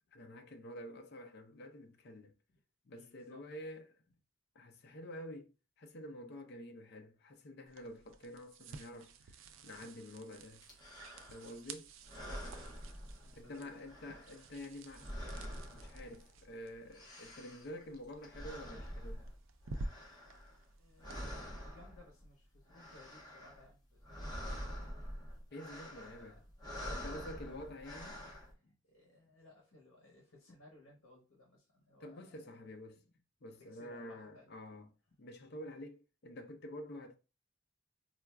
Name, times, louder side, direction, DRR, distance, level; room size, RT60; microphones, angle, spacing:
voice 1, 0.1-2.3 2.9-4.0 4.5-5.5 5.8-10.6 11.3-11.9 13.3-15.1 15.7-19.2 25.5-26.4 26.9-28.2 32.0-33.0 33.4-34.9 35.2-37.1, left 1 dB, 55° left, 0.5 m, -48 dB
voice 2, 2.9-3.4 12.6-12.9 13.2-13.8 20.8-24.9 25.9-32.7 33.6-34.5, left 2 dB, 80° left, 0.9 m, -62 dB
sound 1, 7.7-21.2, right 2 dB, 70° right, 0.4 m, -52 dB
sound 2, 10.6-11.6 12.0-13.6 13.8-16.5 16.7-20.7 21.0-22.3 22.6-23.7 23.9-28.5, equal, 20° left, 0.9 m, -46 dB
4.3 x 2.4 x 2.2 m
head